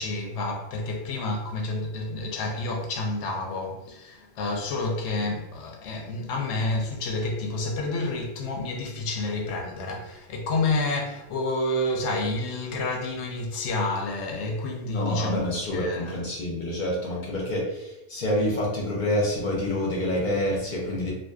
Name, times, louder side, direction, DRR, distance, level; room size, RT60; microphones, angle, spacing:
voice 1, 0.0-16.2, left 2 dB, 90° left, 0.9 m, -29 dB
voice 2, 14.9-21.1, left 1 dB, 55° left, 0.6 m, -27 dB
2.6 x 2.2 x 2.3 m
omnidirectional pair, 1.1 m